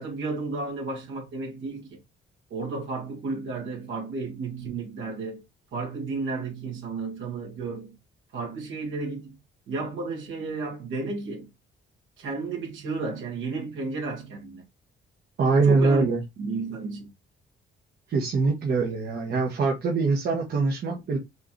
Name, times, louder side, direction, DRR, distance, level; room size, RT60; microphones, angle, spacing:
voice 1, 0.0-2.0 2.5-5.4 5.7-8.0 8.3-9.4 9.7-11.5 12.2-14.7 15.5-16.1 16.4-17.1, right 3 dB, 75° right, 1.9 m, -33 dB
voice 2, 15.4-16.2 18.1-21.2, right 4 dB, 55° right, 1.2 m, -23 dB
4.7 x 2.8 x 3.1 m
cardioid pair, 90°, 20 cm